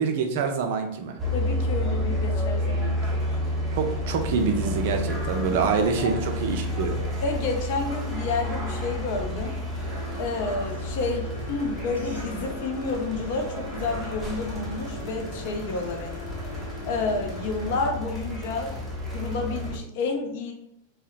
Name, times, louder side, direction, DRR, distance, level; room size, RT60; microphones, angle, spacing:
voice 1, 0.0-1.2 3.7-7.0, right 5 dB, 50° right, 4 dB, 0.4 m, -26 dB
sound 1, 1.2-19.8, left 1 dB, 5° right, 0.6 m, -31 dB
voice 2, 1.3-3.2 6.0-6.1 7.2-9.6 10.2-16.2 16.9-18.8 19.1-20.5, left 3 dB, 50° left, 3 dB, 0.4 m, -30 dB
sound 2, 9.7-17.8, left 1 dB, 85° left, 0.8 m, -42 dB
2.7 x 2.1 x 2.4 m, 0.76 s
figure-of-eight pair, 90°, 0 cm